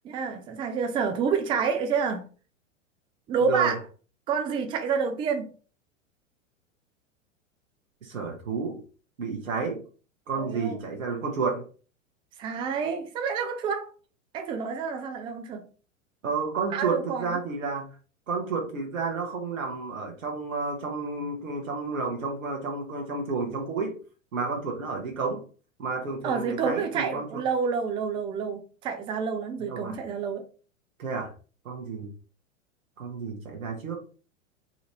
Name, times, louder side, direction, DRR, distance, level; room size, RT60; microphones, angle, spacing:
voice 1, 0.0-2.2 3.3-3.8 4.3-5.5 10.4-10.8 12.4-13.9 14.3-15.6 16.7-17.4 26.2-30.4, right 6 dB, 15° right, 0.4 m, -28 dB
voice 2, 3.4-3.7 8.0-8.8 9.2-9.8 10.3-11.7 16.2-17.9 18.3-24.0 24.3-25.4 25.8-27.4 29.6-30.0 31.0-31.3 31.6-32.1 33.0-34.0, right 4 dB, 75° right, 1.1 m, -31 dB
4.0 x 2.6 x 3.0 m
figure-of-eight pair, 95°, 40 cm